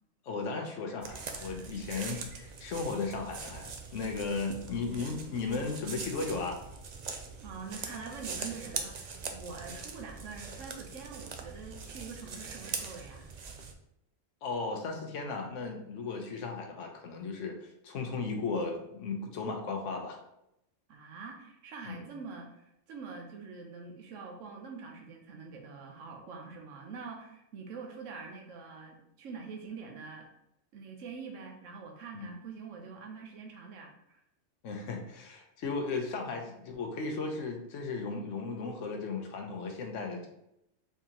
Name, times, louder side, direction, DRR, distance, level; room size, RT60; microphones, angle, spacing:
voice 1, 0.2-6.6 14.4-20.2 21.9-22.1 32.1-32.3 34.6-40.3, left 4 dB, 75° left, 3 dB, 1.1 m, -36 dB
sound 1, 1.0-13.7, right 5 dB, 65° right, 0.4 m, -42 dB
voice 2, 7.4-13.3 20.9-30.3 30.7-34.2, right 5 dB, 85° right, 1 dB, 1.1 m, -45 dB
4.6 x 3.7 x 2.9 m, 0.82 s
omnidirectional pair, 1.3 m